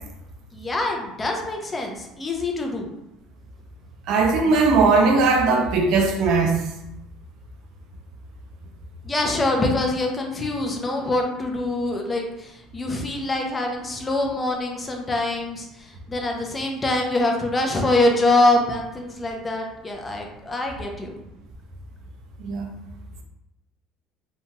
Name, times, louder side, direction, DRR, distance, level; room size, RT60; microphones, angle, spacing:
voice 1, 0.5-2.9 9.0-21.2, left 2 dB, 15° left, 2 dB, 0.4 m, -24 dB
voice 2, 4.1-6.6 22.4-22.7, right 4 dB, 55° right, 2 dB, 0.4 m, -18 dB
2.8 x 2.2 x 2.8 m, 0.88 s
cardioid pair, 165°, 0 cm